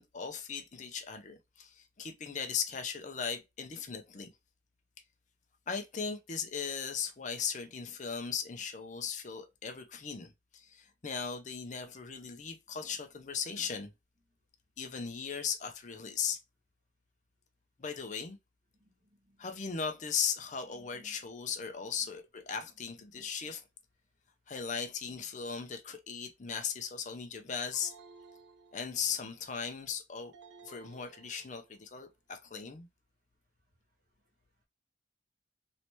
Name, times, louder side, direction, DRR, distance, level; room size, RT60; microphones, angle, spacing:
voice 1, 0.0-4.3 5.7-13.9 14.8-16.4 17.8-18.4 19.4-23.6 24.5-27.9 28.7-30.3 30.6-32.9, left 6 dB, 40° left, 0.5 m, -38 dB
voice 2, 18.8-19.5 20.7-21.2, equal, 55° right, 1.7 m, -62 dB
sound 1, 27.7-29.3 30.3-31.9, right 4 dB, 70° right, 0.6 m, -57 dB
3.1 x 2.8 x 2.9 m
head